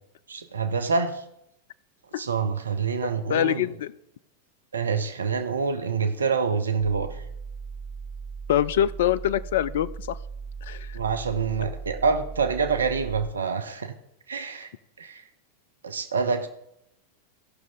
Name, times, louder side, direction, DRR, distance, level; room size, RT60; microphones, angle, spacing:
voice 1, 0.3-1.2 2.2-3.7 4.7-7.2 10.9-13.9 14.3-14.7 15.0-15.2 15.8-16.5, right 5 dB, 70° right, 8 dB, 0.6 m, -26 dB
voice 2, 3.3-3.9 8.5-10.2 10.7-11.0, left 11 dB, 55° left, 20 dB, 0.3 m, -24 dB
sound 1, 6.8-13.3, right 5 dB, 15° right, 0.5 m, -38 dB
16.0 x 6.0 x 3.9 m, 0.81 s
figure-of-eight pair, 90°, 0 cm